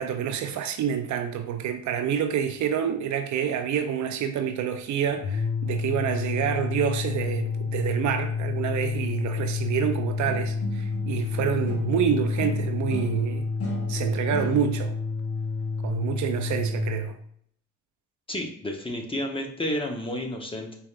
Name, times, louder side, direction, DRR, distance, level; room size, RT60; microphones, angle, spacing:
voice 1, 0.0-13.5 13.9-14.9 15.8-17.2, right 8 dB, 70° right, 0.6 m, -27 dB
sound 1, 5.1-17.0, left 5 dB, 80° left, 0.6 m, -29 dB
sound 2, 10.6-12.0 12.3-14.9, equal, 50° left, 1.1 m, -38 dB
voice 2, 18.3-20.8, left 1 dB, 20° left, 0.8 m, -31 dB
4.7 x 3.3 x 2.4 m
cardioid pair, 90°, 30 cm